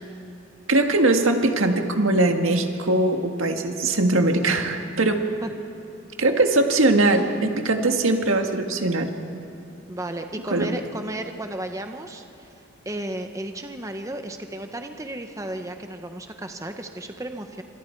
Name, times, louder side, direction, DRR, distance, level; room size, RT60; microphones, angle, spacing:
voice 1, 0.7-5.2 6.2-9.1 10.5-10.7, right 2 dB, 85° right, 4 dB, 1.8 m, -21 dB
voice 2, 9.9-12.5 12.8-17.6, right 1 dB, 15° right, 5 dB, 1.0 m, -34 dB
28.5 x 25.5 x 4.6 m, 2.9 s
head